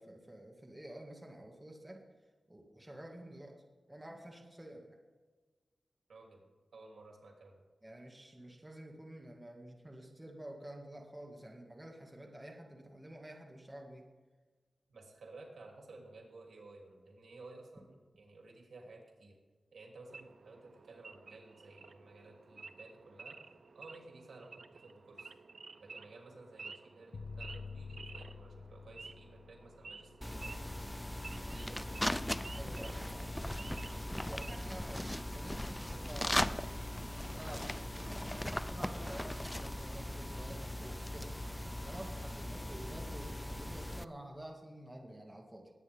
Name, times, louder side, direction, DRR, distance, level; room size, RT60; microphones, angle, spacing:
voice 1, 0.0-2.0 2.5-3.5 3.9-5.0 7.8-14.1 32.5-33.3 34.2-45.7, right 1 dB, 15° right, 0 dB, 2.0 m, -50 dB
voice 2, 6.1-6.4 6.7-7.6 14.9-19.4 19.7-23.4 23.7-25.3 25.8-30.9 31.2-32.0 42.3-42.4, right 2 dB, 80° right, 0 dB, 3.0 m, -55 dB
Wild animals / Idling, 20.1-34.8, right 4 dB, 55° right, 0.6 m, -53 dB
sound 1, 27.1-31.2, left 4 dB, 70° left, 0.4 m, -48 dB
sound 2, 30.2-44.0, left 1 dB, 10° left, 0.4 m, -39 dB
20.5 x 9.0 x 3.6 m, 1.4 s
wide cardioid pair, 85°, 0 cm